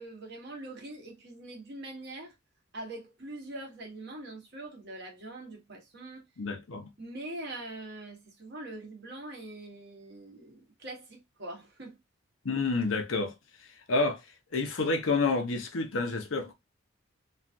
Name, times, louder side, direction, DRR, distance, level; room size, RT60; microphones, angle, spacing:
voice 1, 0.0-2.3 2.7-6.3 7.0-12.0, right 2 dB, 55° right, 1.2 m, -43 dB
voice 2, 6.4-6.9 12.4-13.3 13.9-14.2 14.5-16.5, left 3 dB, 75° left, 0.7 m, -29 dB
3.1 x 2.4 x 2.5 m
head